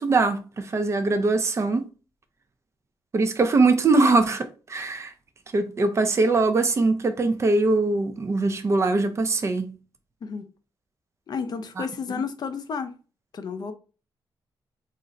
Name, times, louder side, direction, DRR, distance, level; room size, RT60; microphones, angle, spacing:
voice 1, 0.0-1.9 3.1-5.1 5.5-9.7 11.8-11.9, right 3 dB, 30° right, 0.4 m, -22 dB
voice 2, 11.3-12.9 13.3-13.7, left 5 dB, 50° left, 0.5 m, -31 dB
2.5 x 2.1 x 3.7 m
wide cardioid pair, 125°, 9 cm